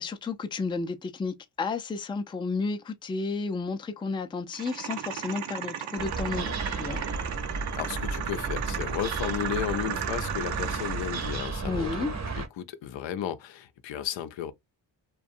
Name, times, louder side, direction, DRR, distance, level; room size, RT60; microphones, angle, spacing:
voice 1, 0.0-7.0 11.6-12.1, left 4 dB, 10° left, 0.4 m, -32 dB
sound 1, 4.5-11.5, right 9 dB, 80° right, 0.7 m, -35 dB
sound 2, 6.0-12.5, right 3 dB, 35° right, 0.7 m, -33 dB
voice 2, 7.7-11.9 12.3-14.5, left 10 dB, 75° left, 0.6 m, -34 dB
2.6 x 2.2 x 2.5 m
cardioid pair, 70°, 46 cm